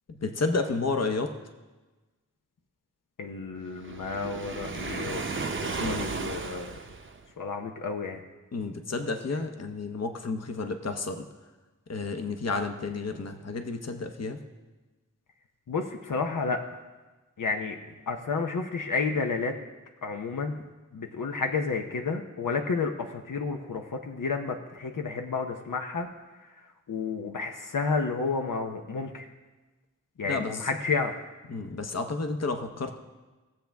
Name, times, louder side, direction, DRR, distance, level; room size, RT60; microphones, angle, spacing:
voice 1, 0.1-1.3 5.8-6.0 8.5-11.2 11.9-14.4 30.2-30.7 31.5-33.0, left 3 dB, 55° left, 6 dB, 0.9 m, -31 dB
voice 2, 3.2-5.2 5.6-6.8 7.4-8.2 15.7-16.6 17.4-17.8 18.1-19.5 20.0-20.6 20.9-26.1 26.9-29.3 30.2-31.1, left 4 dB, 80° left, 4 dB, 0.9 m, -31 dB
Waves surf, 3.8-7.3, right 4 dB, 40° right, 0.8 m, -34 dB
18.5 x 7.4 x 3.5 m, 1.2 s
wide cardioid pair, 65°, 32 cm